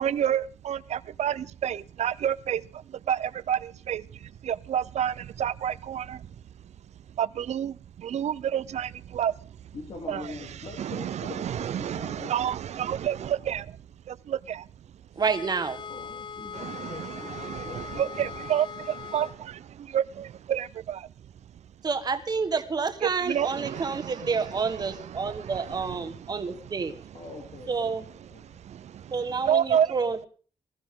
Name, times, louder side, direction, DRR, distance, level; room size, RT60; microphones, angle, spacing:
voice 1, 0.0-6.4 7.1-9.8 10.1-13.8 14.1-14.7 16.5-21.1 23.0-27.1 28.2-29.9, right 9 dB, 70° right, 0.6 m, -30 dB
voice 2, 9.7-12.4 15.9-18.4 19.2-19.3 27.1-28.6, left 4 dB, 60° left, 3.2 m, -43 dB
sound 1, 15.2-19.4, left 7 dB, 40° left, 0.7 m, -40 dB
voice 3, 15.2-15.8 21.8-26.9 27.7-28.1 29.1-30.3, right 5 dB, 35° right, 1.4 m, -29 dB
20.5 x 14.0 x 3.8 m
wide cardioid pair, 155°, 12 cm